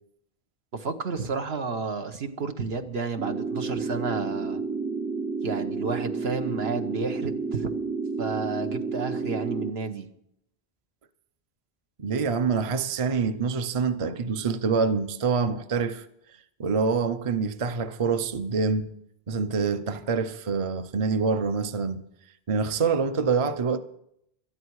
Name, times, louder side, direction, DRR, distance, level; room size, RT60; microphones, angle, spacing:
voice 1, 0.7-4.6 5.4-7.7 8.2-10.1, right 4 dB, 75° right, 1.4 m, -31 dB
sound 1, 3.2-9.7, right 4 dB, 5° right, 0.4 m, -30 dB
voice 2, 12.0-16.0 16.6-18.9 19.3-22.0 22.5-23.8, right 5 dB, 35° right, 0.7 m, -26 dB
18.5 x 12.5 x 4.7 m
omnidirectional pair, 1.1 m